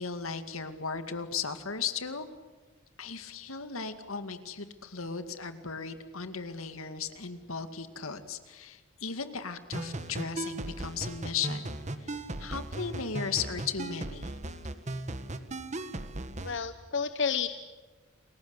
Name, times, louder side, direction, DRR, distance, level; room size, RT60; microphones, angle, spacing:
voice 1, 0.0-2.3 3.0-11.7 12.0-14.4, left 6 dB, 90° left, 9 dB, 2.2 m, -36 dB
sound 1, 9.7-16.6, right 2 dB, 35° right, 1.6 m, -37 dB
voice 2, 16.4-17.5, left 6 dB, 60° left, 11 dB, 1.0 m, -30 dB
29.5 x 21.5 x 8.2 m, 1.3 s
head